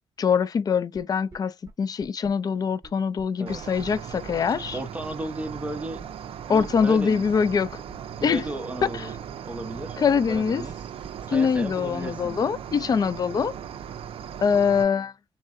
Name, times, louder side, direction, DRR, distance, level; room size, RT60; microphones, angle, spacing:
voice 1, 0.2-1.5 1.8-4.8 6.5-7.8 8.2-8.4 9.0-9.1 10.0-10.6 11.3-13.5 14.4-15.1, left 6 dB, 40° left, 0.4 m, -23 dB
sound 1, 0.9-1.0 1.3-1.4 1.7-1.8 2.0-2.3 2.8-2.9 3.2-3.3 3.5-4.2 4.7-4.8 5.0-5.1 5.4-5.5 5.8-6.0 6.6-6.7 6.9-7.0 7.3-7.9 8.4-8.5 8.8-8.9 9.2-9.3 9.5-9.8 10.3-10.4 10.7-10.8 11.0-11.1, right 3 dB, 30° right, 1.0 m, -45 dB
Cricket, 3.5-14.8, right 8 dB, 65° right, 0.4 m, -38 dB
voice 2, 4.7-6.0 6.5-7.2 8.2-9.1 9.4-10.0 10.3-10.8 11.3-12.4, right 1 dB, 15° right, 0.5 m, -34 dB
3.6 x 2.0 x 2.5 m
cardioid pair, 110°, 10 cm